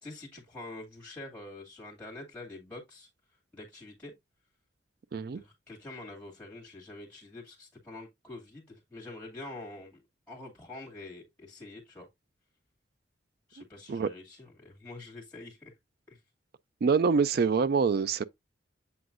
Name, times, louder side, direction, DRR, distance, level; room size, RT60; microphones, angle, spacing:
voice 1, 0.0-3.1 3.5-4.1 5.3-10.0 10.3-12.1 13.5-15.7 16.1-16.2, left 2 dB, 5° left, 2.2 m, -46 dB
voice 2, 16.8-18.2, right 5 dB, 55° right, 0.4 m, -25 dB
7.8 x 5.7 x 2.5 m
head